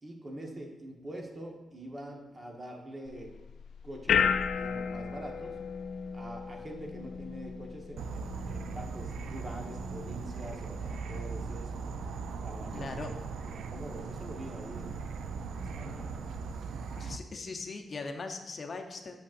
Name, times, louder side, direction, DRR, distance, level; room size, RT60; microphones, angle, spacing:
voice 1, 0.0-3.3 3.8-5.6 6.1-11.8 12.4-12.9 13.4-16.2, right 1 dB, 30° right, 1 dB, 1.1 m, -45 dB
sound 1, 3.1-16.6, left 7 dB, 80° left, 0.3 m, -37 dB
Insect / Frog, 8.0-17.2, right 5 dB, 85° right, 0.3 m, -39 dB
voice 2, 12.7-13.1 16.9-19.2, left 3 dB, 45° left, 4 dB, 0.7 m, -40 dB
8.4 x 6.0 x 2.5 m, 1.1 s
cardioid pair, 85°, 0 cm